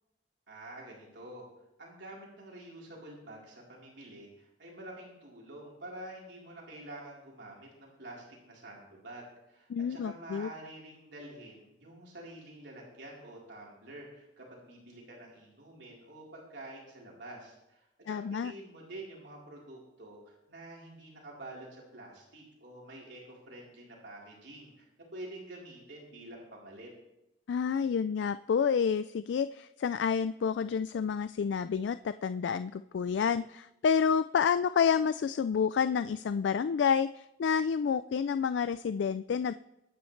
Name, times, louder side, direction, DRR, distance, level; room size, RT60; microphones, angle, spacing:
voice 1, 0.5-1.4 1.8-24.9 25.1-26.9, right 1 dB, 75° right, -4 dB, 3.8 m, -48 dB
voice 2, 9.7-10.5 18.1-18.5 27.5-39.5, left 6 dB, 75° left, 13 dB, 0.3 m, -29 dB
23.5 x 9.4 x 3.2 m, 0.91 s
head